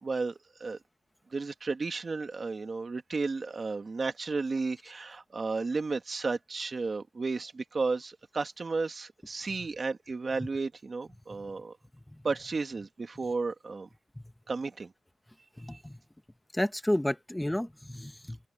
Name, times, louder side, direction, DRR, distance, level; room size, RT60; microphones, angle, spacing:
voice 1, 0.0-0.8 1.3-11.7 12.2-13.9 14.5-14.9 15.7-15.8, right 4 dB, 35° right, 1.7 m, -33 dB
voice 2, 15.6-16.0 16.5-18.4, left 1 dB, 5° left, 1.1 m, -31 dB
open air
wide cardioid pair, 170°, 0 cm